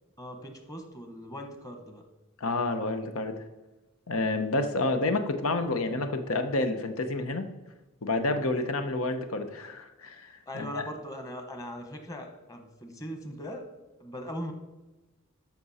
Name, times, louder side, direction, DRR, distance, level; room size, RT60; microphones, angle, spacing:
voice 1, 0.2-2.0 10.5-13.6 14.0-14.5, equal, 15° left, 4 dB, 1.2 m, -40 dB
voice 2, 2.4-3.4 4.1-7.5 8.0-10.8, left 2 dB, 90° left, 8 dB, 0.9 m, -29 dB
12.5 x 6.1 x 4.2 m, 1.1 s
head